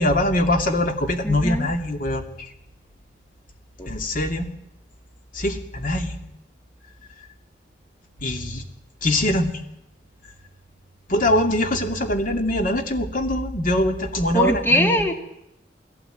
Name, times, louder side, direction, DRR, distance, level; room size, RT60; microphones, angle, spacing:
voice 1, 0.0-2.2 3.9-4.5 5.3-6.2 8.2-8.6 9.0-9.5 11.1-15.1, left 1 dB, 50° left, 5 dB, 2.6 m, -23 dB
voice 2, 1.2-1.7 3.8-3.9 14.3-15.1, equal, 15° left, 5 dB, 2.1 m, -21 dB
21.0 x 17.0 x 9.2 m, 0.81 s
head